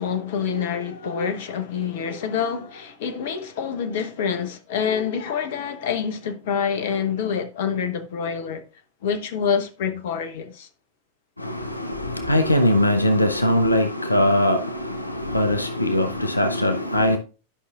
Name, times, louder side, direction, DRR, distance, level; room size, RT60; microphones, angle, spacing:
voice 1, 0.0-8.6 9.0-10.7, left 7 dB, 55° left, 0.9 m, -26 dB
voice 2, 11.4-17.2, left 1 dB, 85° left, 0.7 m, -21 dB
11.5 x 5.6 x 2.3 m
figure-of-eight pair, 90°, 0 cm